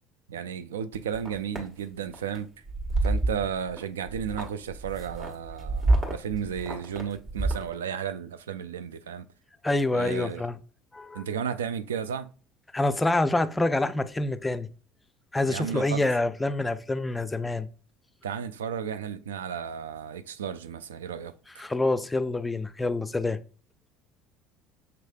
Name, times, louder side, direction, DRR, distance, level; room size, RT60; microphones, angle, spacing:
voice 1, 0.3-2.5 3.0-9.3 9.9-10.4 11.1-12.3 15.5-16.1 18.2-21.3, right 8 dB, 75° right, 0.3 m, -33 dB
sound 1, 0.9-1.6 2.1-2.4 2.7-3.8 4.1-7.7, right 2 dB, 40° right, 1.3 m, -28 dB
voice 2, 9.6-10.6 10.9-11.2 12.7-14.7 15.3-17.7 21.6-23.4, left 2 dB, 15° left, 0.4 m, -26 dB
5.8 x 3.2 x 2.2 m
figure-of-eight pair, 65°, 0 cm